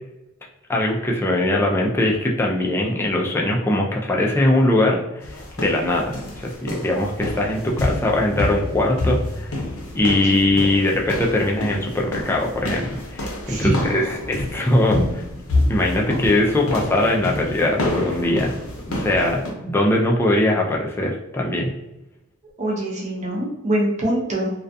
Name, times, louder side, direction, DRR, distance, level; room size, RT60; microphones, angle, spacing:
voice 1, 0.7-9.6 9.9-15.2 15.7-18.6 18.9-21.7, left 1 dB, 10° left, -1 dB, 0.3 m, -21 dB
sound 1, 5.2-19.5, left 1 dB, 85° left, 0.6 m, -28 dB
voice 2, 13.4-13.8 22.6-24.5, right 1 dB, 35° right, -3 dB, 0.6 m, -23 dB
2.3 x 2.2 x 2.6 m, 0.95 s
head